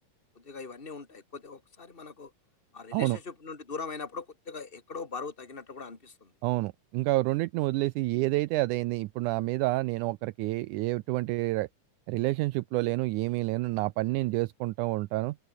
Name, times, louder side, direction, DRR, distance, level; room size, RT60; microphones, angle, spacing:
voice 1, 0.3-2.3 2.7-6.3, left 4 dB, 15° left, 3.2 m, -41 dB
voice 2, 6.4-11.7 12.1-15.4, right 19 dB, 80° right, 1.9 m, -28 dB
open air
omnidirectional pair, 4.0 m